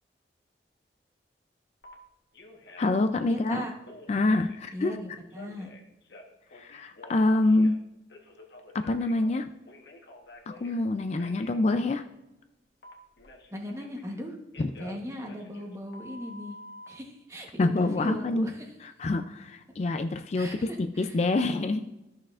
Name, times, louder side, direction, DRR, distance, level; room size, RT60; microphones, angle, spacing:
Telephone, 1.8-1.9 2.3-3.0 3.3-4.7 5.3-7.8 8.1-10.8 11.2-11.5 12.8-14.2 14.5-16.9, left 2 dB, 70° left, 1.2 m, -49 dB
voice 1, 2.8-3.7 4.1-5.2 6.5-7.8 8.7-9.5 10.5-12.0 14.6-14.7 17.6-18.5 18.8-21.9, left 2 dB, 35° left, 8 dB, 0.3 m, -26 dB
voice 2, 3.3-3.7 4.7-5.7 13.5-14.4 14.8-16.6 16.9-18.5 20.3-21.2, equal, 15° right, 1 dB, 1.0 m, -38 dB
13.5 x 6.3 x 2.5 m, 0.98 s
head